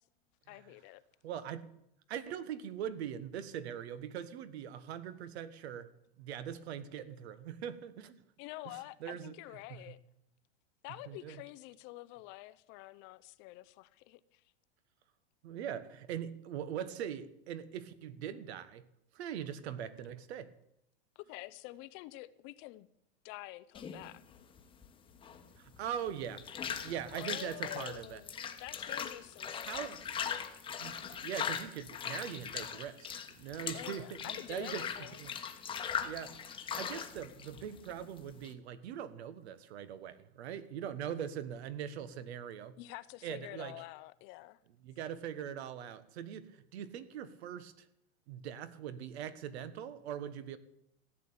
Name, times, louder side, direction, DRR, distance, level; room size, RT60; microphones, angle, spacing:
voice 1, 0.5-1.0 8.4-10.0 10.8-14.4 21.2-22.9 23.2-24.2 27.1-29.9 33.7-35.2 42.8-44.6, left 18 dB, 35° left, 15 dB, 0.5 m, -48 dB
voice 2, 1.2-1.7 2.1-5.9 6.2-8.2 9.0-9.3 9.7-9.9 11.1-11.4 15.4-18.8 19.1-20.5 25.6-26.5 26.8-28.2 29.7-30.0 30.8-34.8 35.2-35.3 36.0-42.8 43.2-43.7 44.8-47.8 48.3-50.6, right 9 dB, 70° right, 14 dB, 1.5 m, -41 dB
sound 1, 23.7-38.5, left 7 dB, 15° left, 1.1 m, -40 dB
15.0 x 9.1 x 8.6 m, 0.79 s
supercardioid pair, 150°, 33 cm